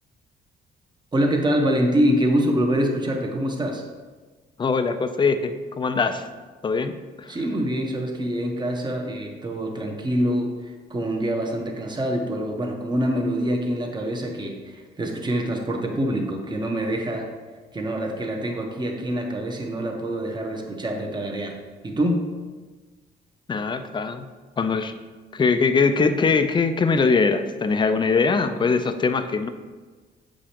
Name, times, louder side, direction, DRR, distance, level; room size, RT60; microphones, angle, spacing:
voice 1, 1.1-3.8 7.3-17.3 17.7-21.6 21.8-22.2, equal, 20° right, 2 dB, 1.0 m, -25 dB
voice 2, 4.6-6.2 6.6-7.3 23.5-24.3 24.6-24.9 25.3-29.5, left 4 dB, 25° left, 9 dB, 0.4 m, -22 dB
7.2 x 5.0 x 2.9 m, 1.4 s
cardioid pair, 90°, 20 cm